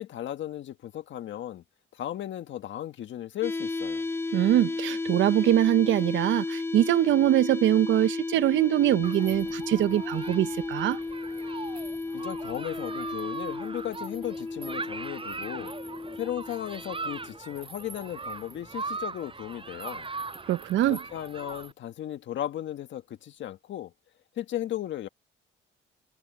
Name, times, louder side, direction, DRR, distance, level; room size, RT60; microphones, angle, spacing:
voice 1, 0.0-1.6 1.9-4.0 12.1-15.7 16.2-20.1 20.9-23.9 24.3-25.1, left 12 dB, 70° left, 1.6 m, -36 dB
sound 1, 3.4-17.4, left 3 dB, 10° left, 0.5 m, -34 dB
voice 2, 4.3-11.0 20.5-21.0, right 13 dB, 70° right, 0.6 m, -23 dB
Human group actions, 9.0-21.7, right 3 dB, 25° right, 7.3 m, -40 dB
cardioid pair, 90°, 20 cm